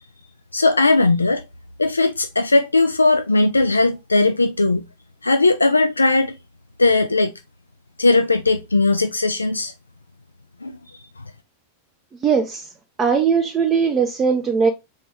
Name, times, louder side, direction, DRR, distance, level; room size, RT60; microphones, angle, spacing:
voice 1, 0.5-1.4 1.8-4.8 5.2-6.3 6.8-7.3 8.0-9.7 10.6-10.7, left 3 dB, 80° left, 0.3 m, -18 dB
voice 2, 12.2-12.7 13.0-14.7, right 6 dB, 25° right, 0.6 m, -19 dB
4.4 x 3.1 x 3.4 m
figure-of-eight pair, 90°, 0 cm